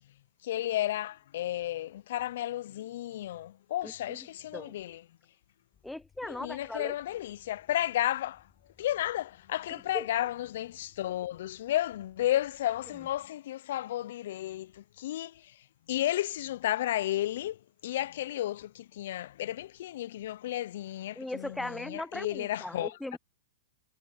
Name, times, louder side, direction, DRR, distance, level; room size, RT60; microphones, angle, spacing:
voice 1, 0.4-5.0 6.2-8.5 8.8-23.0, left 13 dB, 65° left, 0.5 m, -33 dB
voice 2, 3.8-4.2 4.5-4.7 5.8-6.9 9.9-10.1 21.2-23.2, left 1 dB, 5° left, 0.5 m, -38 dB
sound 1, 5.7-13.3, left 8 dB, 20° left, 7.3 m, -67 dB
hypercardioid pair, 120°, 0 cm